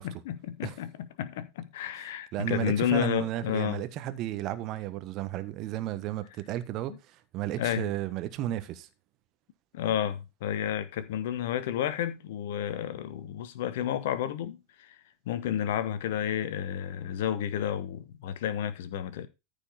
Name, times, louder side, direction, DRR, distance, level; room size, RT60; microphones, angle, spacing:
voice 1, 0.0-3.8 7.6-7.9 9.7-15.0 15.3-19.3, left 10 dB, 55° left, 1.2 m, -31 dB
voice 2, 2.0-8.9, right 13 dB, 35° right, 1.3 m, -33 dB
14.0 x 5.3 x 4.0 m
figure-of-eight pair, 90°, 0 cm